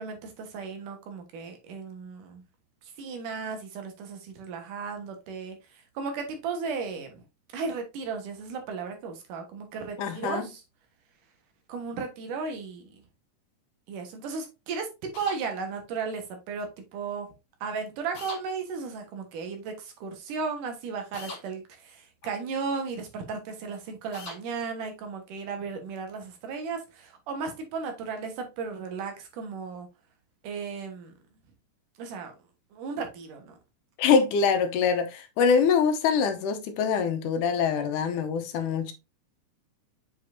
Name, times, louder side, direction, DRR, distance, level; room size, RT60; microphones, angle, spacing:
voice 1, 0.0-2.4 2.8-7.2 7.5-10.6 11.7-13.0 13.9-17.3 17.6-29.9 30.4-31.1 32.0-32.3 32.7-33.6, right 5 dB, 85° right, 3.0 m, -35 dB
voice 2, 10.0-10.5 34.0-38.9, left 6 dB, 80° left, 2.3 m, -24 dB
sound 1, 15.1-15.4 18.1-18.4 21.1-21.4 24.1-24.4, left 3 dB, 45° left, 2.3 m, -40 dB
7.4 x 5.2 x 2.7 m
omnidirectional pair, 3.7 m